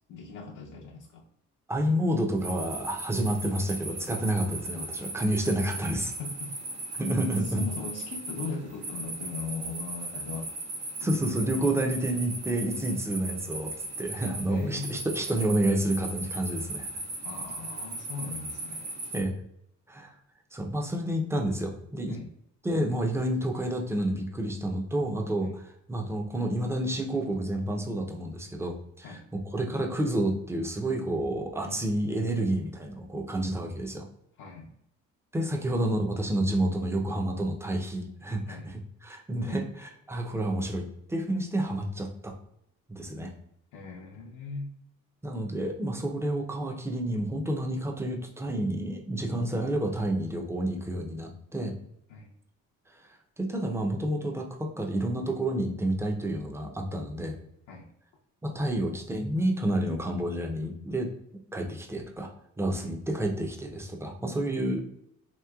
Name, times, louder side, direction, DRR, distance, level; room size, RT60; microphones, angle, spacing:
voice 1, 0.1-1.2 6.2-6.5 7.4-10.5 11.5-12.0 14.5-15.0 17.2-18.9 22.1-22.3 25.4-25.5 29.0-29.2 31.6-31.9 34.4-34.7 35.6-35.7 38.5-38.7 39.5-39.6 43.7-44.7 52.1-52.3 57.7-57.9 62.7-62.9, left 4 dB, 75° left, -2 dB, 0.6 m, -39 dB
voice 2, 1.7-6.1 7.0-7.6 11.0-16.9 19.1-19.3 19.9-20.1 20.5-22.2 22.6-34.1 35.3-42.3 42.9-43.3 45.2-51.8 53.4-57.4 58.4-61.1 61.5-62.3 62.6-64.9, right 1 dB, 10° right, 2 dB, 0.5 m, -29 dB
sound 1, 2.4-19.2, right 2 dB, 80° right, 1.3 m, -37 dB
3.0 x 3.0 x 2.3 m, 0.76 s
cardioid pair, 90°, 30 cm